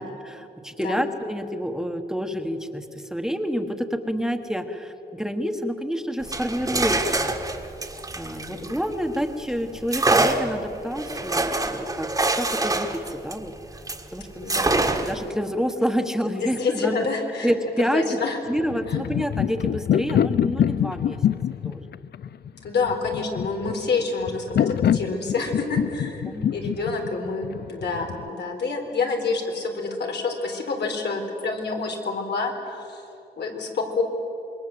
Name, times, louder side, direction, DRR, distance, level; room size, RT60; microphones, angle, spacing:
voice 1, 0.0-7.3 8.1-13.5 14.1-16.9 17.4-18.2 18.5-21.2 21.6-21.9 26.2-26.6, equal, 5° right, 6 dB, 1.3 m, -28 dB
sound 1, 6.2-9.2 9.9-14.1 14.5-15.3, right 2 dB, 20° right, 1.5 m, -25 dB
voice 2, 14.4-14.9 16.3-17.5 17.9-18.4 18.9-19.0 22.6-26.2 26.5-33.0 33.4-34.0, left 4 dB, 90° left, 2 dB, 4.0 m, -28 dB
sound 2, 18.6-28.3, left 9 dB, 75° left, 0.5 m, -25 dB
27.0 x 22.0 x 7.9 m, 2.9 s
wide cardioid pair, 145°, 17 cm